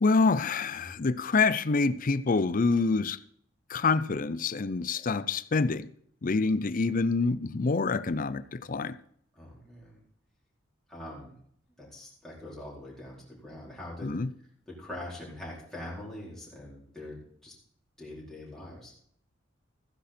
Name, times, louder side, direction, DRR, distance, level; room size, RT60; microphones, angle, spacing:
voice 1, 0.0-3.2 3.7-5.9 6.2-9.0 14.0-14.3, left 4 dB, 40° left, 0.5 m, -26 dB
voice 2, 9.4-10.0 10.9-11.3 11.8-14.2 14.7-17.5 18.0-18.9, left 1 dB, ahead, 4.3 m, -43 dB
15.0 x 10.0 x 4.4 m
head